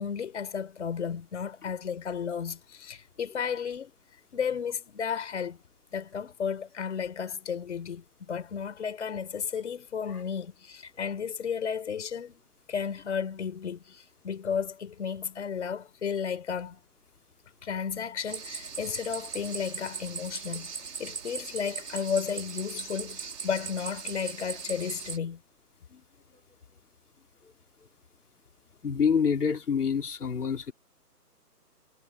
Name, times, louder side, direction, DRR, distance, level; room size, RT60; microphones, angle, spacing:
voice 1, 0.0-3.9 4.3-5.6 5.9-16.8 17.6-25.4, left 7 dB, 45° left, 5.0 m, -33 dB
sound 1, 18.3-25.2, right 5 dB, 75° right, 2.9 m, -39 dB
voice 2, 28.8-30.7, left 6 dB, 70° left, 3.8 m, -26 dB
hypercardioid pair, 165°, 48 cm